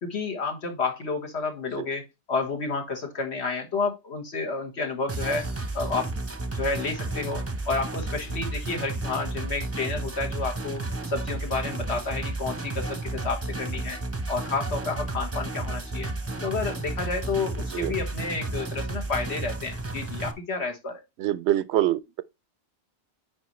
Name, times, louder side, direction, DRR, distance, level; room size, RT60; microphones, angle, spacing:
voice 1, 0.0-2.0 2.3-5.5 5.7-6.1 6.5-14.0 14.3-16.1 16.4-21.0, left 4 dB, 75° left, 1.7 m, -30 dB
sound 1, 5.1-20.3, right 2 dB, 15° right, 0.7 m, -32 dB
voice 2, 21.2-22.2, right 13 dB, 80° right, 0.9 m, -25 dB
9.6 x 4.1 x 3.1 m
omnidirectional pair, 1.1 m